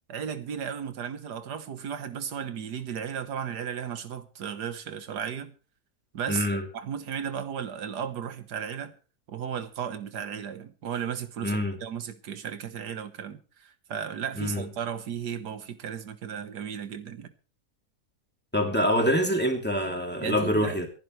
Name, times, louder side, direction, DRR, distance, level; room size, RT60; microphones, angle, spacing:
voice 1, 0.1-5.5 6.1-8.9 9.3-17.3 20.2-20.8, right 8 dB, 90° right, 1.8 m, -35 dB
voice 2, 6.3-6.7 11.4-11.8 14.4-14.7 18.5-20.9, equal, 5° left, 2.9 m, -25 dB
26.0 x 11.0 x 3.3 m
omnidirectional pair, 1.7 m